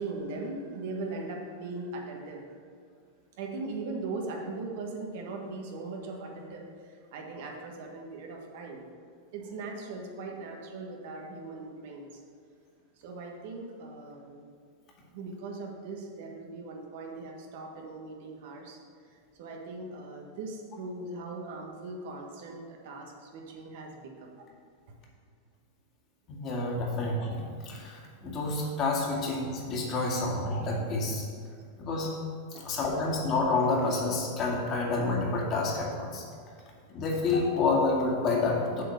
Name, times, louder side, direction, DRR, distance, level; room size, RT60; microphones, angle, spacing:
voice 1, 0.0-2.4 3.4-8.8 9.3-12.2 13.0-14.4 15.1-18.8 19.1-24.4 24.9-25.0 32.5-32.7, right 3 dB, 65° right, 1 dB, 1.4 m, -39 dB
voice 2, 26.3-31.3 31.8-32.2 32.6-36.2 36.9-38.8, left 3 dB, 40° left, -2 dB, 2.1 m, -29 dB
7.3 x 4.2 x 6.8 m, 2.2 s
hypercardioid pair, 110°, 0 cm